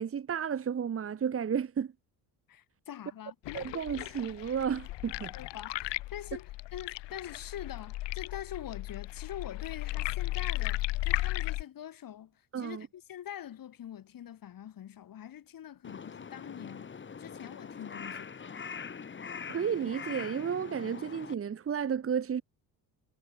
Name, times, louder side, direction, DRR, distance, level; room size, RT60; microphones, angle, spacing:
voice 1, 0.0-1.9 3.5-5.3 12.5-12.9 19.5-22.4, right 7 dB, 30° right, 1.9 m, -32 dB
voice 2, 2.5-3.4 5.3-18.6, left 10 dB, 50° left, 7.8 m, -44 dB
sound 1, 3.4-11.6, left 18 dB, 80° left, 5.0 m, -35 dB
Crow, 15.8-21.4, left 6 dB, 25° left, 2.9 m, -43 dB
cardioid pair, 130°, 42 cm